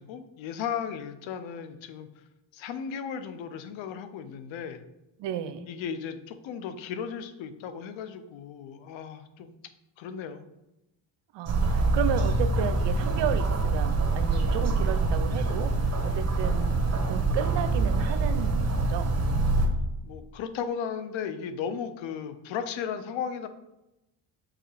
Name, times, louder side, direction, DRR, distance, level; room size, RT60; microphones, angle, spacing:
voice 1, 0.0-2.1 2.5-4.8 5.7-9.5 10.0-10.4 20.0-23.5, left 7 dB, 65° left, 0.8 m, -35 dB
voice 2, 5.2-5.7 11.3-19.2, right 9 dB, 60° right, 0.7 m, -33 dB
sound 1, 11.5-19.7, right 3 dB, 30° right, 1.3 m, -25 dB
4.9 x 4.3 x 4.9 m
supercardioid pair, 70°, 50 cm